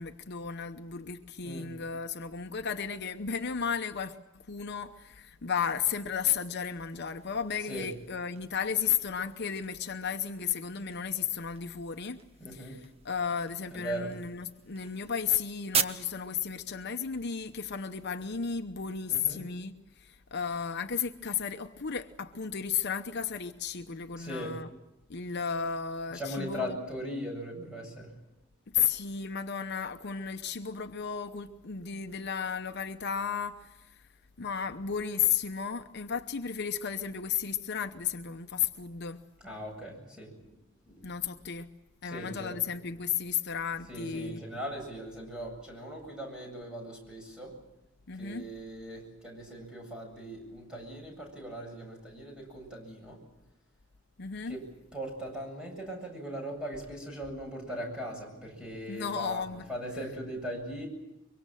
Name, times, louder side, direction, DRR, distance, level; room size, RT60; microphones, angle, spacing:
voice 1, 0.0-12.2 12.5-24.7 25.1-26.8 28.7-34.0 34.4-39.2 41.0-41.7 42.0-44.4 48.1-48.4 54.2-54.6 58.9-59.6, left 7 dB, 55° left, 7 dB, 0.9 m, -34 dB
sound 1, 6.5-18.3, right 6 dB, 30° right, 1.1 m, -41 dB
voice 2, 12.4-12.8 13.7-14.1 19.1-19.4 24.2-24.5 26.1-28.1 39.4-40.5 40.8-41.1 42.0-42.6 43.9-47.5 48.2-53.2 54.5-54.6 54.9-59.4 59.7-60.9, equal, 5° right, 0 dB, 7.9 m, -39 dB
24.0 x 23.5 x 7.7 m, 0.91 s
head